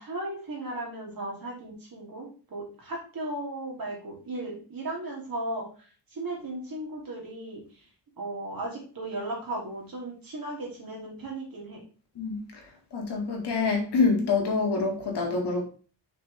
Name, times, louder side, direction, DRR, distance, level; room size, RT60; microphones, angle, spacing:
voice 1, 0.0-7.9 8.2-11.8, right 1 dB, 50° right, -1 dB, 2.7 m, -36 dB
voice 2, 12.2-12.6 12.9-15.6, left 4 dB, 65° left, 1 dB, 2.2 m, -26 dB
6.6 x 5.9 x 3.3 m, 0.38 s
wide cardioid pair, 160°, 43 cm